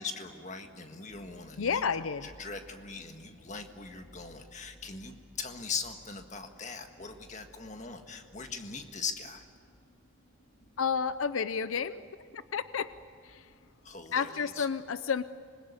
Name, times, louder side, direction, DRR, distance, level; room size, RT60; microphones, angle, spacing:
voice 1, 0.0-1.9 2.2-9.5 13.8-14.7, left 5 dB, 35° left, 5 dB, 1.7 m, -40 dB
sound 1, 0.6-14.1, equal, 65° left, 3.5 m, -60 dB
voice 2, 1.6-2.3 10.8-12.0 12.3-12.9 13.2-13.5 14.1-15.2, left 6 dB, 90° left, 14 dB, 0.6 m, -31 dB
26.0 x 21.0 x 9.6 m, 2.3 s
head